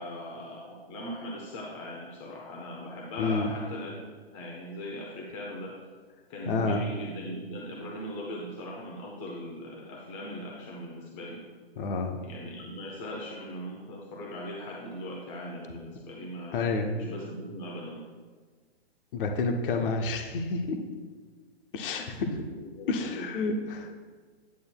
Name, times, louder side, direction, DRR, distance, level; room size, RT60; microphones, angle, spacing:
voice 1, 0.0-5.8 6.3-11.4 12.2-16.5 16.9-18.1 22.5-23.4, equal, 30° left, -2 dB, 0.9 m, -39 dB
voice 2, 3.2-3.5 6.5-6.8 11.8-12.2 16.5-17.0 19.1-20.8 21.7-22.4 22.9-24.0, left 3 dB, 55° left, 4 dB, 0.9 m, -29 dB
9.3 x 8.4 x 2.2 m, 1.5 s
hypercardioid pair, 150°, 32 cm